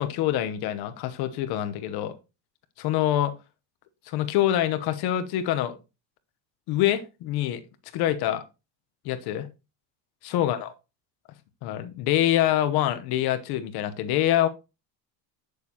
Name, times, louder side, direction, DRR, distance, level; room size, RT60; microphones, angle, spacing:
voice 1, 0.0-2.1 2.8-3.3 4.1-5.8 6.7-7.6 7.9-8.4 9.0-9.5 10.2-10.7 11.6-14.5, left 12 dB, 55° left, 11 dB, 0.9 m, -25 dB
8.2 x 6.6 x 2.8 m, 0.27 s
cardioid pair, 165°, 46 cm